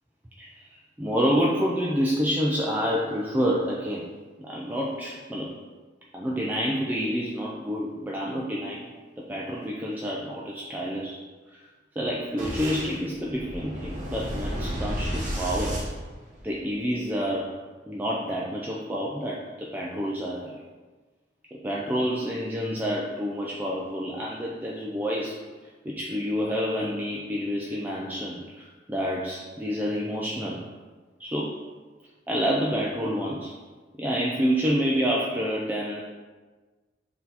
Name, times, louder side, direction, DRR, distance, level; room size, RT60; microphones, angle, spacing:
voice 1, 0.4-4.1 4.4-5.5 6.1-11.2 11.5-11.6 12.0-15.8 16.4-17.5 17.9-20.6 21.5-25.4 25.8-30.6 31.2-31.5 32.3-33.5 34.0-36.0, equal, 10° right, -4 dB, 0.3 m, -28 dB
Boom, 12.4-16.8, equal, 45° right, 0.9 m, -32 dB
4.1 x 2.7 x 4.0 m, 1.3 s
head